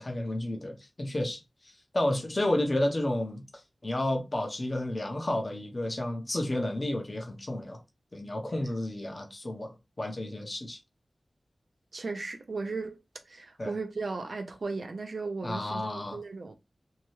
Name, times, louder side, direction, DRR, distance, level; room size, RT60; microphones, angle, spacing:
voice 1, 0.0-1.4 1.9-3.4 3.8-7.8 8.1-9.7 10.0-10.8 13.6-13.7 15.4-16.2, left 1 dB, 40° left, 0.9 m, -31 dB
voice 2, 11.9-13.0 13.3-16.5, right 3 dB, 75° right, 0.5 m, -36 dB
2.7 x 2.2 x 3.1 m
wide cardioid pair, 70°, 0 cm